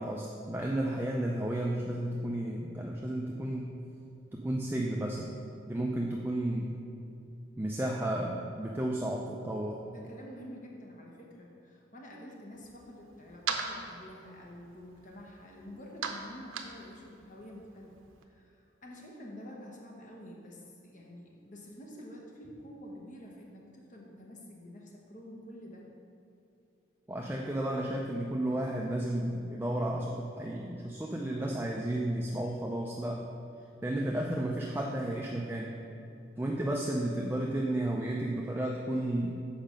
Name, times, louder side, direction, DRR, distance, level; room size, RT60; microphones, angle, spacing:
voice 1, 0.0-3.8 4.3-5.4 5.7-6.8 7.6-9.8 27.1-33.2 33.8-35.8 36.4-39.3, right 1 dB, 10° right, -2 dB, 0.4 m, -32 dB
voice 2, 9.8-18.0 18.2-25.9, equal, 40° left, -2 dB, 1.0 m, -48 dB
sound 1, 12.5-18.3, right 5 dB, 90° right, 0.7 m, -41 dB
7.3 x 5.2 x 5.1 m, 2.7 s
head